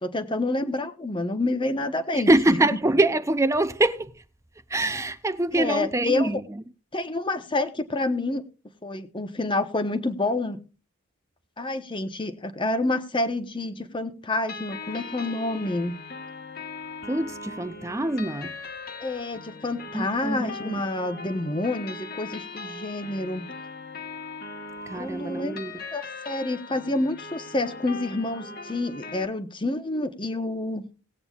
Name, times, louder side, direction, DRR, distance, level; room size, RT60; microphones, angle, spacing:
voice 1, 0.0-2.6 5.5-6.4 6.9-8.4 8.8-10.6 11.6-15.9 19.0-23.4 24.9-25.6 25.9-30.9, left 2 dB, 20° left, 0.9 m, -28 dB
voice 2, 2.1-4.1 4.7-6.6 17.1-18.5 19.9-20.8 24.9-25.7, right 1 dB, 15° right, 0.5 m, -24 dB
sound 1, 14.5-29.3, left 3 dB, 40° left, 1.4 m, -40 dB
18.5 x 8.7 x 2.4 m
head